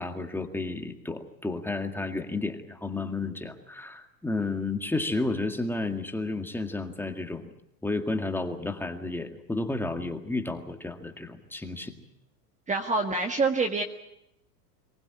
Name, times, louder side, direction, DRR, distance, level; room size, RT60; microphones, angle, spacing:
voice 1, 0.0-7.5 7.8-12.0, left 2 dB, 5° left, 4 dB, 2.0 m, -32 dB
voice 2, 12.7-13.8, right 3 dB, 15° right, 4 dB, 1.6 m, -26 dB
24.0 x 16.0 x 9.9 m, 0.82 s
supercardioid pair, 130°, 48 cm